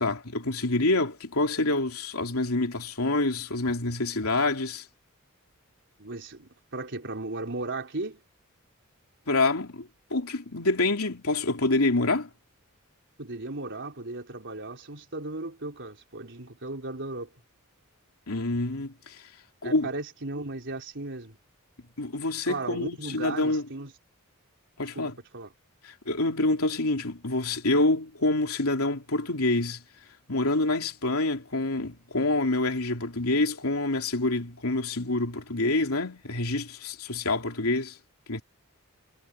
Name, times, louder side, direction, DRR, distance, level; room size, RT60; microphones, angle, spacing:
voice 1, 0.0-4.8 9.3-12.3 18.3-19.2 19.6-19.9 22.0-23.6 24.8-25.1 25.8-29.8 30.3-38.0 38.3-38.4, left 2 dB, 80° left, 3.3 m, -27 dB
voice 2, 6.0-8.2 13.2-17.3 19.6-21.4 22.5-23.9 24.9-25.5, right 2 dB, 60° right, 4.1 m, -36 dB
head